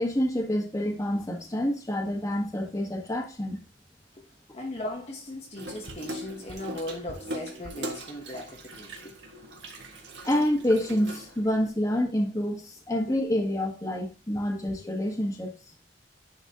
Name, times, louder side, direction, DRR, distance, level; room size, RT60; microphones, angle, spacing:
voice 1, 0.0-3.6 10.2-15.5, left 1 dB, 20° left, 1.4 m, -27 dB
voice 2, 4.5-9.2 14.3-14.6, left 1 dB, 40° left, 1.1 m, -38 dB
Water tap faucet / Sink (filling or washing), 5.6-11.7, right 1 dB, 85° right, 1.6 m, -40 dB
10.0 x 4.0 x 2.9 m
head